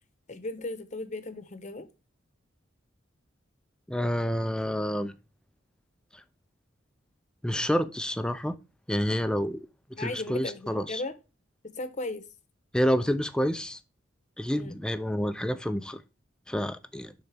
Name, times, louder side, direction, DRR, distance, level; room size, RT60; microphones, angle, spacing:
voice 1, 0.3-1.9 10.0-11.1 11.7-12.2 14.5-14.8, left 2 dB, 40° left, 0.9 m, -36 dB
voice 2, 3.9-5.1 6.1-6.2 7.4-8.6 8.9-9.7 10.0-11.0 12.7-13.8 14.4-16.0 16.5-17.1, equal, 5° left, 0.4 m, -28 dB
10.5 x 4.0 x 3.4 m
head